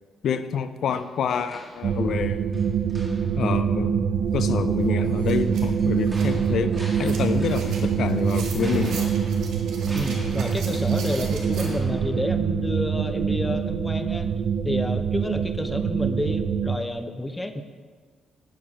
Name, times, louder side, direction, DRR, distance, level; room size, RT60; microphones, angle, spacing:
voice 1, 0.2-2.4 3.3-4.1 4.3-6.7 7.0-9.1, left 7 dB, 70° left, 11 dB, 0.5 m, -27 dB
sound 1, 0.9-2.2 2.5-3.5 5.3-8.0 8.6-12.9 13.3-13.4, equal, 5° right, 1.9 m, -44 dB
sound 2, 1.8-16.8, right 7 dB, 60° right, 0.5 m, -25 dB
sound 3, 4.4-4.5 4.8-11.7, right 4 dB, 75° right, 1.8 m, -40 dB
voice 2, 9.9-14.3 14.6-17.6, left 1 dB, 15° left, 8 dB, 0.6 m, -30 dB
10.5 x 4.7 x 5.9 m, 1.5 s
cardioid pair, 90°, 0 cm